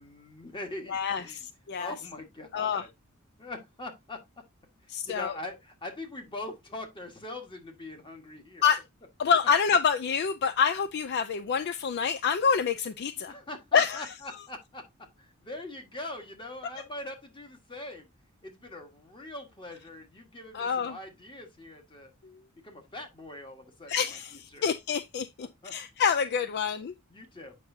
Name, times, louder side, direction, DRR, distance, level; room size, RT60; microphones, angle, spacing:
voice 1, 0.0-1.5 1.8-2.9 3.4-4.4 4.8-8.7 13.2-18.1 18.4-22.1 22.6-24.7 25.4-25.7 27.1-27.6, left 2 dB, 25° left, 1.5 m, -42 dB
voice 2, 0.9-1.9 2.5-2.8 4.9-5.3 8.6-8.8 9.2-13.3 13.7-14.0 20.5-21.0 23.9-26.9, left 6 dB, 50° left, 0.4 m, -27 dB
8.2 x 5.8 x 2.7 m
head